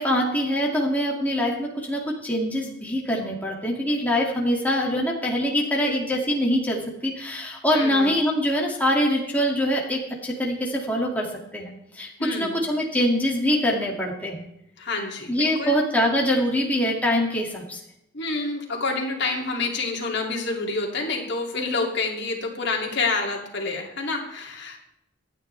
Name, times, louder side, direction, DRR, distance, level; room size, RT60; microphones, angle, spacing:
voice 1, 0.0-11.3 11.5-14.5 15.3-17.8, equal, 10° left, -2 dB, 2.3 m, -24 dB
voice 2, 7.7-8.1 12.2-12.6 14.8-15.8 18.1-24.8, left 3 dB, 60° left, 0 dB, 2.7 m, -28 dB
26.5 x 9.7 x 3.4 m, 0.83 s
head